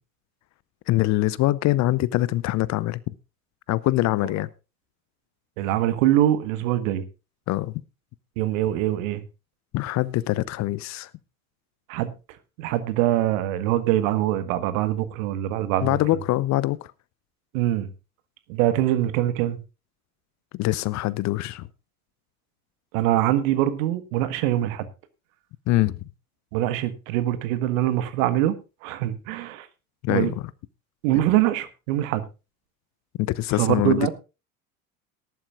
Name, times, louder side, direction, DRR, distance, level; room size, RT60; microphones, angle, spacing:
voice 1, 0.9-3.0 3.7-4.5 7.5-7.7 9.7-11.1 15.8-16.9 20.5-21.7 25.7-26.0 30.0-30.3 33.2-34.1, left 17 dB, 40° left, 0.6 m, -23 dB
voice 2, 5.6-7.0 8.4-9.2 11.9-12.1 12.6-16.0 17.5-17.9 18.5-19.6 22.9-24.9 26.5-29.7 30.1-30.3 31.0-32.3 33.5-34.1, right 13 dB, 60° right, 1.5 m, -23 dB
18.5 x 11.0 x 2.4 m
figure-of-eight pair, 75°, 44 cm